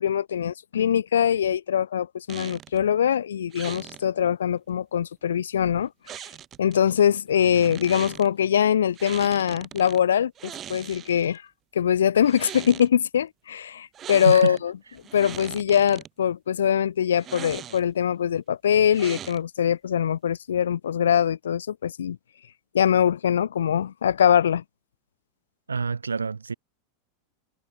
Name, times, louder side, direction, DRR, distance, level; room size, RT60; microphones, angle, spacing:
voice 1, 0.0-5.9 6.6-11.4 11.7-14.7 15.1-22.2 22.7-24.6, left 9 dB, 65° left, 0.4 m, -23 dB
sound 1, 2.3-2.8 3.5-4.0 6.1-6.8 7.4-8.3 9.0-10.0 10.4-11.4 12.2-12.9 13.9-14.6 15.0-16.1 17.2-18.0 18.9-19.6, right 10 dB, 30° right, 1.5 m, -40 dB
voice 2, 7.4-7.8 14.3-14.6 25.7-26.5, right 5 dB, 75° right, 0.3 m, -28 dB
figure-of-eight pair, 85°, 0 cm